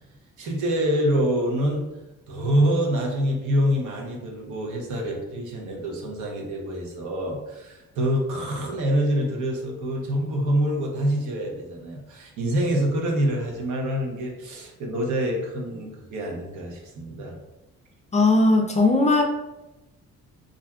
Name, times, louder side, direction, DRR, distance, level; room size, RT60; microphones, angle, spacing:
voice 1, 0.4-1.9 2.3-17.4, equal, 75° right, 0 dB, 0.8 m, -26 dB
voice 2, 18.1-19.2, left 2 dB, 25° left, 1 dB, 0.3 m, -18 dB
2.5 x 2.2 x 3.5 m, 0.98 s
cardioid pair, 90°, 30 cm